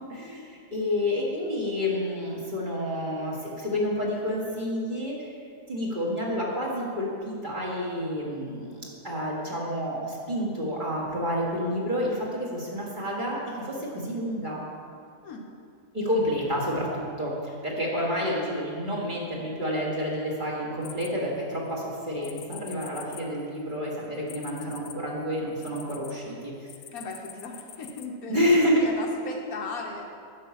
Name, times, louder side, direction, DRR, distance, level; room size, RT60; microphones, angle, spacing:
voice 1, 0.1-5.3 5.7-14.6 15.9-26.7 28.3-28.8, left 1 dB, 30° right, -4 dB, 1.7 m, -29 dB
voice 2, 15.2-15.5 26.9-30.1, left 3 dB, 65° left, 2 dB, 1.2 m, -37 dB
sound 1, 20.8-21.7 22.2-26.1 26.7-28.1, left 10 dB, 90° left, 0.6 m, -45 dB
9.4 x 5.4 x 7.0 m, 2.3 s
omnidirectional pair, 1.8 m